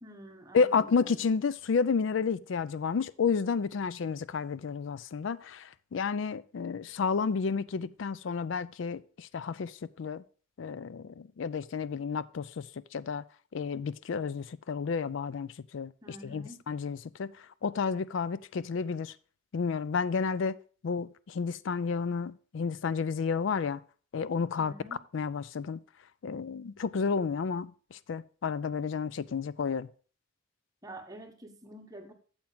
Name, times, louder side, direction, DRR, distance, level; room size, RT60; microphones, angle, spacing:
voice 1, 0.0-1.2 16.0-16.6 24.6-25.0 30.8-32.1, right 1 dB, 20° right, 1.1 m, -47 dB
voice 2, 0.5-10.2 10.6-12.6 12.9-13.2 13.5-15.9 16.2-17.3 17.6-19.1 19.5-20.6 20.8-23.8 24.1-24.7 25.1-25.8 26.2-29.9, left 5 dB, 65° left, 0.4 m, -31 dB
8.7 x 7.3 x 3.9 m
head